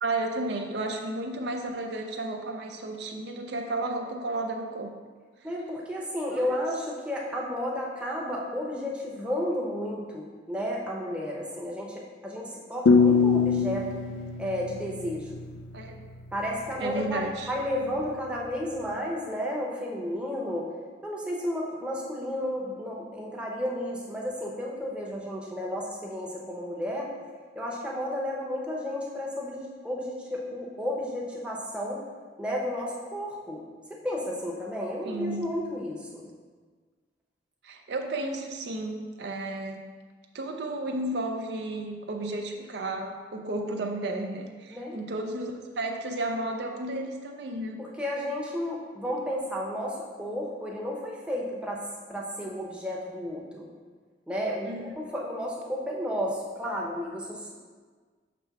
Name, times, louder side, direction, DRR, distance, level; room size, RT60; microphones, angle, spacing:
voice 1, 0.0-4.9 6.3-6.5 15.7-16.0 16.8-17.5 35.0-35.6 37.6-39.9 40.3-47.8 54.7-54.9, right 2 dB, 60° right, 3 dB, 0.5 m, -33 dB
voice 2, 5.4-14.0 14.4-15.4 16.3-20.7 21.0-27.1 27.6-32.0 32.4-33.6 33.9-36.2 44.7-45.0 47.8-51.8 52.1-53.7 54.3-57.5, equal, 5° right, -3 dB, 0.7 m, -32 dB
sound 1, 12.9-15.8, left 4 dB, 85° left, 0.4 m, -23 dB
6.0 x 3.2 x 5.7 m, 1.5 s
head